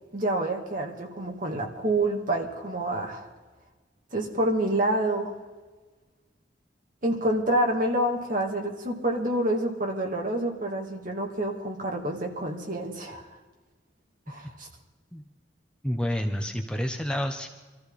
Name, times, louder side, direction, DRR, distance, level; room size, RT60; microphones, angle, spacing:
voice 1, 0.1-3.3 4.1-5.3 7.0-13.3 14.3-14.7, right 1 dB, 45° right, 1 dB, 2.4 m, -27 dB
voice 2, 15.8-17.5, equal, 5° left, 3 dB, 0.7 m, -29 dB
24.0 x 14.0 x 4.1 m, 1.3 s
head